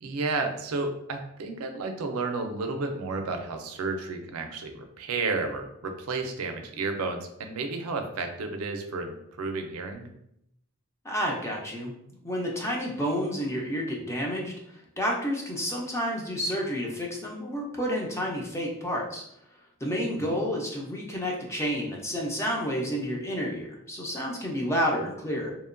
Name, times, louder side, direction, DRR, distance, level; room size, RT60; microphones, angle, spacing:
voice 1, 0.0-10.1 20.2-20.4, right 3 dB, 75° right, 5 dB, 0.4 m, -32 dB
voice 2, 11.0-12.0 12.2-14.5 15.0-19.2 19.8-25.5, equal, 10° left, -1 dB, 0.4 m, -30 dB
2.8 x 2.1 x 2.5 m, 0.76 s
head